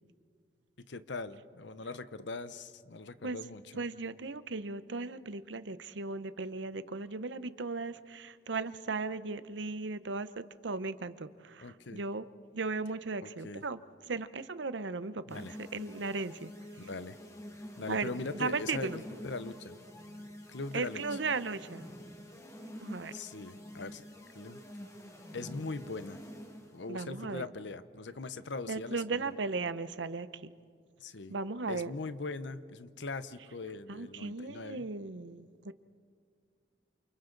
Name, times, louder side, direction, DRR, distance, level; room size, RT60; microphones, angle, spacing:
voice 1, 0.9-3.8 11.6-12.0 13.2-13.6 15.3-15.5 16.8-17.2 17.8-19.8 20.5-21.2 23.1-24.1 24.3-24.6 25.3-26.2 26.7-29.3 31.0-31.3 31.7-34.8, left 3 dB, 80° left, 13 dB, 0.9 m, -41 dB
voice 2, 3.8-12.3 12.5-13.8 14.1-16.5 17.9-18.1 18.3-19.0 20.7-21.8 22.8-23.1 26.9-27.5 28.7-30.5 31.3-31.9 33.9-35.7, right 3 dB, 85° right, 14 dB, 0.8 m, -36 dB
sound 1, 15.3-26.8, equal, 15° left, 1.8 m, -48 dB
29.0 x 28.0 x 4.0 m, 2.1 s
head